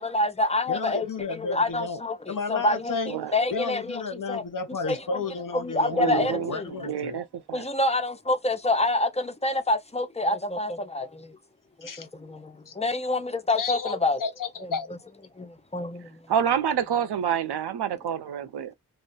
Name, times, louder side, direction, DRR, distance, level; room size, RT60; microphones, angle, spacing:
voice 1, 0.0-4.4 4.8-5.2 5.5-6.7 7.5-11.4 11.8-14.2 14.6-15.0 15.4-16.4, left 2 dB, 20° left, 0.4 m, -27 dB
voice 2, 0.7-2.0 2.3-3.1 3.5-7.2 11.8-12.1 12.7-12.8 13.6-14.9, left 4 dB, 55° left, 0.7 m, -32 dB
voice 3, 5.9-7.7 16.3-18.7, right 9 dB, 90° right, 0.5 m, -28 dB
2.3 x 2.0 x 2.6 m
wide cardioid pair, 80°, 38 cm